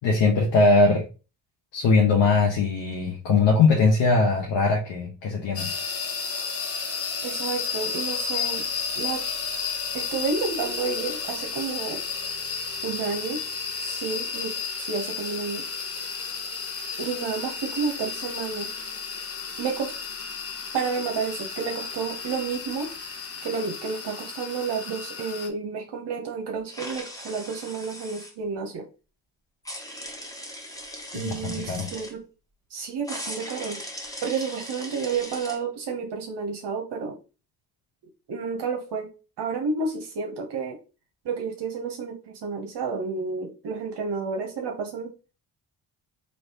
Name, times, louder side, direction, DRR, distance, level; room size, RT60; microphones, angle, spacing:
voice 1, 0.0-1.0 1.7-5.7 31.1-31.9, left 3 dB, 60° left, -1 dB, 1.1 m, -21 dB
sound 1, 5.6-25.5, left 5 dB, 30° left, 0.8 m, -32 dB
voice 2, 7.2-8.6 9.0-9.2 9.9-12.0 12.8-13.4 13.8-15.6 17.0-18.8 19.6-19.9 20.7-22.9 23.4-28.9 31.1-32.2 32.7-33.8 34.2-37.2 38.3-39.1 39.4-40.8 41.2-45.1, right 5 dB, 55° right, 3 dB, 0.9 m, -30 dB
sound 2, 26.7-28.3 29.6-32.1 33.0-35.6, equal, 5° left, 1.1 m, -39 dB
3.2 x 3.0 x 2.8 m, 0.33 s
hypercardioid pair, 50°, 48 cm